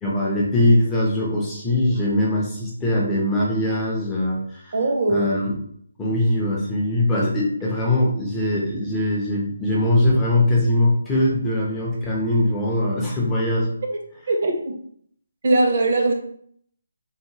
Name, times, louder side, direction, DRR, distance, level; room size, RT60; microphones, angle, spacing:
voice 1, 0.0-4.7 5.1-5.6 6.0-13.7, left 1 dB, 10° left, -5 dB, 0.4 m, -21 dB
voice 2, 4.7-5.3 13.9-14.0 14.3-14.7 15.4-16.1, right 2 dB, 50° right, 3 dB, 0.5 m, -20 dB
2.8 x 2.1 x 2.7 m, 0.64 s
hypercardioid pair, 170°, 0 cm